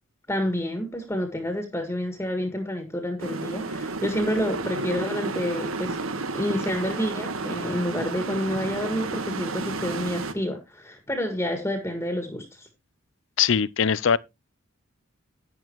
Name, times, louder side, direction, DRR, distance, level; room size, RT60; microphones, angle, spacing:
voice 1, 0.3-6.0 6.3-12.7, equal, 15° left, 1.7 m, -29 dB
sound 1, 3.2-10.3, right 3 dB, 90° right, 1.4 m, -31 dB
voice 2, 13.4-14.2, left 7 dB, 70° left, 0.5 m, -21 dB
10.5 x 10.5 x 3.0 m
head